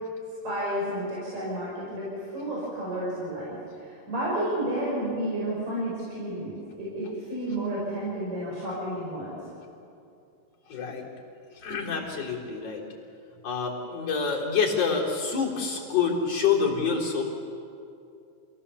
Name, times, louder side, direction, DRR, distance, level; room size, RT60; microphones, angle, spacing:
voice 1, 0.4-3.6 4.1-9.4, right 1 dB, 50° right, -7 dB, 6.8 m, -31 dB
voice 2, 10.7-11.1 11.6-12.8 13.4-17.2, left 5 dB, 45° left, -3 dB, 4.7 m, -27 dB
29.0 x 17.5 x 7.1 m, 2.6 s
omnidirectional pair, 4.0 m